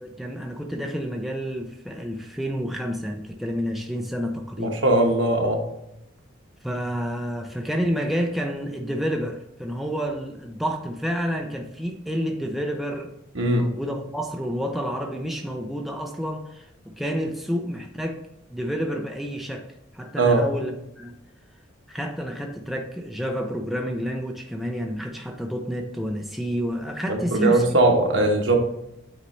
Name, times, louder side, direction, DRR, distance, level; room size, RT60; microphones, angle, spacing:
voice 1, 0.0-4.8 6.6-13.1 13.5-18.2 18.5-19.7 19.9-21.1 21.9-27.6, equal, ahead, 2 dB, 0.5 m, -29 dB
voice 2, 4.6-5.6 13.3-13.7 20.2-20.5 27.1-28.6, right 2 dB, 70° right, 2 dB, 1.2 m, -20 dB
8.4 x 4.0 x 3.2 m, 0.83 s
head